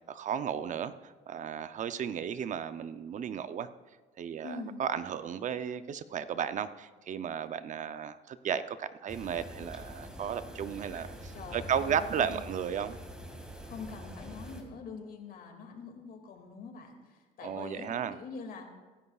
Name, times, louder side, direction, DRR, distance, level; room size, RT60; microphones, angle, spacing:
voice 1, 0.1-3.7 4.2-13.0 17.4-18.2, right 8 dB, 45° right, 12 dB, 0.6 m, -34 dB
voice 2, 4.4-4.8 11.3-12.4 13.7-18.7, left 4 dB, 60° left, 3 dB, 2.2 m, -44 dB
sound 1, 9.1-14.6, equal, 5° right, 2.0 m, -45 dB
23.0 x 11.0 x 2.4 m, 1.3 s
cardioid pair, 110°, 17 cm